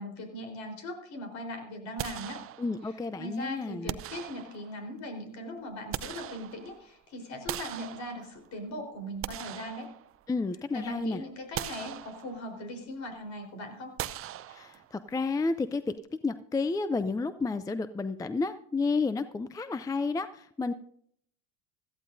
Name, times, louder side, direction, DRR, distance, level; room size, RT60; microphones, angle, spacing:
voice 1, 0.0-2.4 3.2-9.9 10.7-14.0, left 1 dB, 55° left, 4 dB, 4.2 m, -39 dB
sound 1, 2.0-3.0 3.9-4.9 5.6-6.9 7.5-8.6 9.0-10.5 10.9-11.0 11.5-12.6 14.0-15.1, right 12 dB, 40° right, 0.7 m, -40 dB
voice 2, 2.6-4.0 10.3-11.2 14.5-15.9 16.2-20.7, left 3 dB, 10° left, 13 dB, 0.4 m, -31 dB
17.0 x 14.0 x 2.7 m, 0.66 s
supercardioid pair, 100°, 34 cm